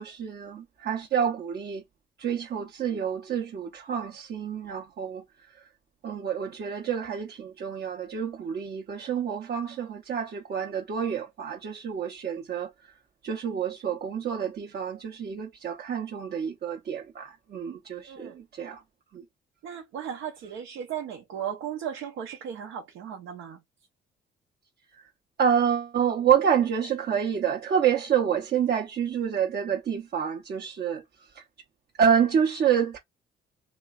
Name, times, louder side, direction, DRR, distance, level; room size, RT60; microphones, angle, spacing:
voice 1, 0.0-1.8 2.2-5.2 6.0-12.7 13.2-18.8 19.1-19.2 25.4-31.0 32.0-33.0, right 8 dB, 55° right, 0.8 m, -28 dB
voice 2, 19.6-23.6, right 9 dB, 90° right, 0.8 m, -36 dB
3.1 x 3.0 x 2.3 m
cardioid pair, 90°, 20 cm